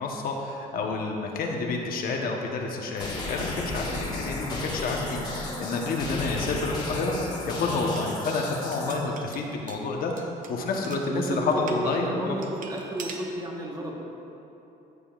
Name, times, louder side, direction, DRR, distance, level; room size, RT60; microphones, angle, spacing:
voice 1, 0.0-12.3, left 3 dB, 60° left, 1 dB, 1.0 m, -29 dB
sound 1, 3.0-9.0, left 2 dB, 25° left, 1.6 m, -34 dB
sound 2, 7.4-11.8 12.4-13.3, right 5 dB, 50° right, 0.8 m, -45 dB
voice 2, 11.1-13.9, right 1 dB, 25° right, 0 dB, 1.2 m, -32 dB
14.5 x 6.9 x 2.4 m, 2.9 s
cardioid pair, 110°, 17 cm